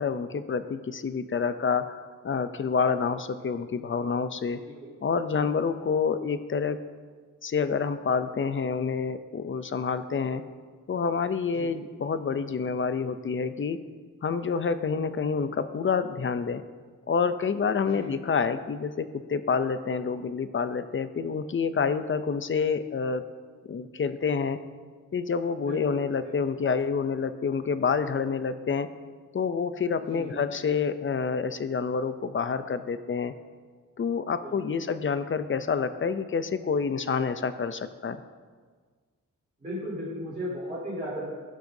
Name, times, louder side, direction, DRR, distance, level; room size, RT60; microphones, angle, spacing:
voice 1, 0.0-2.0 2.2-4.6 5.0-6.8 7.4-10.4 10.9-13.8 14.2-16.6 17.1-23.2 23.7-24.6 25.1-28.9 29.3-33.3 34.0-38.2, left 5 dB, 40° left, 11 dB, 0.5 m, -28 dB
voice 2, 25.6-26.3 30.0-30.4 34.4-34.7 39.6-41.3, equal, 20° right, -10 dB, 3.2 m, -36 dB
17.0 x 7.5 x 2.7 m, 1.5 s
wide cardioid pair, 165°, 33 cm